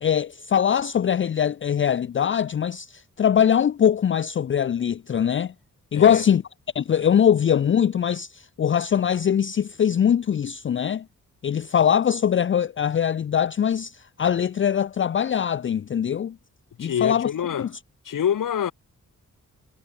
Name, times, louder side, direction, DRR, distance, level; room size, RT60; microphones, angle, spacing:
voice 1, 0.0-5.5 5.9-6.4 6.7-11.0 11.4-13.9 14.2-16.3 16.8-17.3 17.6-17.7, left 8 dB, 40° left, 0.4 m, -22 dB
voice 2, 5.9-6.3 16.8-17.7 18.1-18.7, left 9 dB, 85° left, 2.0 m, -26 dB
wide cardioid pair, 105°, 31 cm